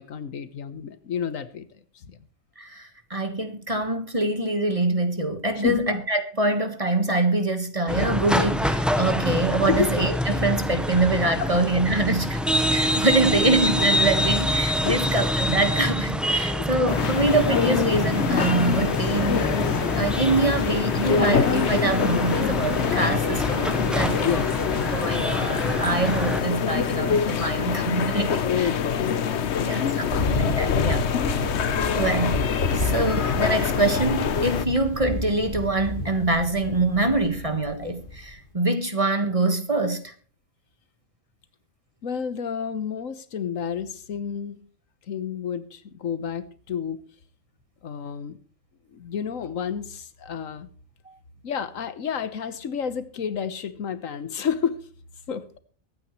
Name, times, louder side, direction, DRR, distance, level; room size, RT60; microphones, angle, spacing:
voice 1, 0.0-1.7 1.9-2.2 5.6-5.9 9.7-9.9 11.4-11.5 14.8-15.2 16.5-16.7 24.2-24.6 28.4-29.1 29.6-30.0 42.0-44.6 45.1-47.0 47.8-48.4 48.9-50.7 51.4-54.8 55.3-55.6, left 7 dB, 75° left, 1.4 m, -30 dB
voice 2, 2.6-12.4 12.7-19.5 19.9-24.3 24.9-28.7 29.6-31.0 32.0-40.1, right 2 dB, 25° right, 1.5 m, -25 dB
sound 1, 7.9-26.4, equal, ahead, 0.9 m, -26 dB
sound 2, 16.9-34.7, left 7 dB, 60° left, 1.1 m, -25 dB
Thunder, 30.1-38.3, left 2 dB, 40° left, 2.0 m, -30 dB
23.0 x 9.2 x 3.1 m
omnidirectional pair, 1.4 m